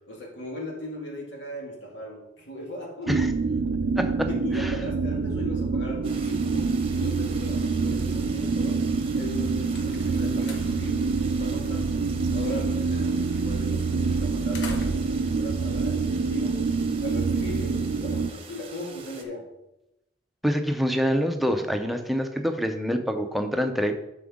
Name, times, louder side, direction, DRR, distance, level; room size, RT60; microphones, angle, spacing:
voice 1, 0.1-3.2 3.6-3.7 4.3-8.8 9.1-12.0 12.3-16.6 17.0-19.5, left 1 dB, 85° left, -1 dB, 2.1 m, -38 dB
sound 1, 3.1-18.3, right 4 dB, 70° right, 0.4 m, -26 dB
voice 2, 4.0-4.3 4.6-4.7 20.4-23.9, equal, ahead, 5 dB, 0.6 m, -26 dB
sound 2, 6.0-19.2, right 5 dB, 30° right, 0.8 m, -45 dB
sound 3, 9.4-16.7, left 2 dB, 65° left, 1.1 m, -45 dB
7.5 x 6.0 x 3.6 m, 0.89 s
head